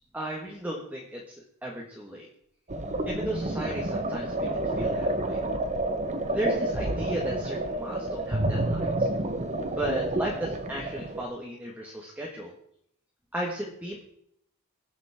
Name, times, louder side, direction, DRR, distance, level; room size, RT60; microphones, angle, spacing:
voice 1, 0.1-1.4 1.6-2.3 3.1-4.5 4.8-5.4 6.3-9.1 9.7-12.5 13.3-14.0, right 1 dB, 5° right, -2 dB, 1.7 m, -35 dB
sound 1, 2.7-11.2, right 1 dB, 30° right, 1.1 m, -29 dB
22.0 x 7.4 x 3.7 m, 0.70 s
head